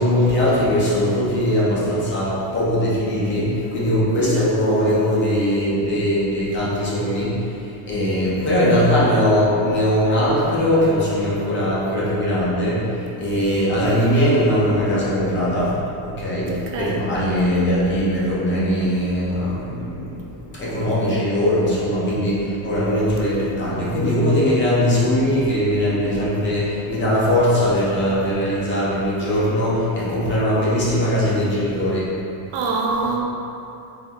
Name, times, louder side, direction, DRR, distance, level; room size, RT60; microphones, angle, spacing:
voice 1, 0.0-7.4 7.8-15.7 16.0-32.1, equal, 25° left, -8 dB, 0.6 m, -20 dB
voice 2, 4.2-4.5 13.8-14.1 16.5-17.0 32.5-33.3, right 4 dB, 55° right, -1 dB, 0.5 m, -25 dB
4.0 x 3.0 x 2.8 m, 2.7 s
cardioid pair, 165°, 49 cm